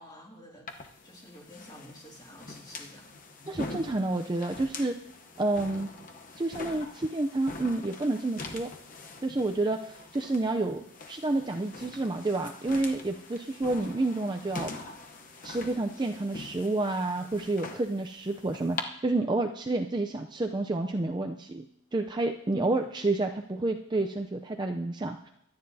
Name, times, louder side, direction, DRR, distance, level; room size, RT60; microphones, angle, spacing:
voice 1, 0.0-3.1 3.5-3.6 22.5-22.9, equal, 20° left, -1 dB, 2.3 m, -47 dB
sound 1, 0.7-18.8, left 3 dB, 40° left, 0.8 m, -44 dB
voice 2, 3.5-5.0 5.4-5.9 6.4-8.7 9.2-14.7 15.4-21.6 21.9-25.3, right 2 dB, 20° right, 4 dB, 0.4 m, -29 dB
23.5 x 9.6 x 2.7 m, 0.76 s
head